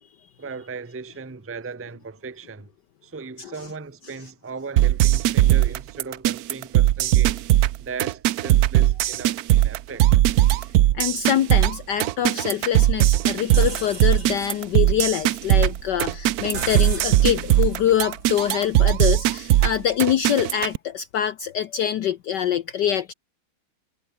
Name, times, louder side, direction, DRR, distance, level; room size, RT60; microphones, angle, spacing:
voice 1, 0.4-2.7 3.0-7.4 7.8-10.1, right 4 dB, 15° right, 0.5 m, -37 dB
sound 1, 4.8-20.8, right 14 dB, 80° right, 0.8 m, -19 dB
voice 2, 10.9-23.1, left 10 dB, 65° left, 1.3 m, -24 dB
sound 2, 13.5-19.3, right 6 dB, 65° right, 3.1 m, -37 dB
omnidirectional pair, 2.3 m